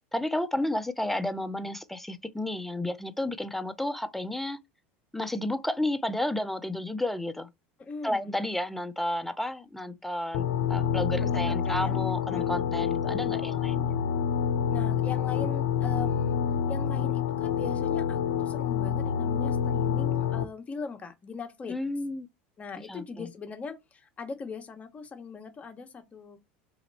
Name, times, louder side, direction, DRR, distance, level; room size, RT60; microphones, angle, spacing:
voice 1, 0.1-4.6 5.1-7.5 8.0-13.9 21.7-22.3 22.8-23.3, left 1 dB, 5° left, 0.5 m, -32 dB
voice 2, 7.8-8.3 11.2-12.0 12.3-12.9 14.7-16.4 16.7-21.8 22.6-26.4, left 4 dB, 25° left, 0.9 m, -40 dB
sound 1, 10.3-20.4, left 8 dB, 75° left, 0.5 m, -27 dB
3.1 x 2.8 x 4.0 m
supercardioid pair, 105°, 5 cm